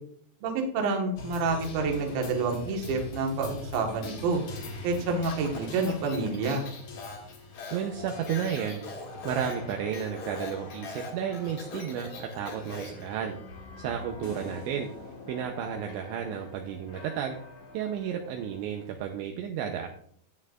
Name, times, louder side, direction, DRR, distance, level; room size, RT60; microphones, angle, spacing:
voice 1, 0.4-4.4 4.8-6.6, right 3 dB, 60° right, 1 dB, 2.8 m, -28 dB
sound 1, 1.2-19.2, left 3 dB, 65° left, 1.8 m, -44 dB
Speech, 5.3-13.1, left 3 dB, 45° left, 2.7 m, -42 dB
voice 2, 7.7-8.8 9.2-13.4 13.8-14.9 15.3-17.4 17.7-19.9, right 8 dB, 80° right, 3 dB, 2.8 m, -32 dB
sound 2, 14.2-16.6, left 2 dB, 85° left, 1.2 m, -47 dB
13.0 x 8.9 x 2.5 m, 0.62 s
omnidirectional pair, 5.8 m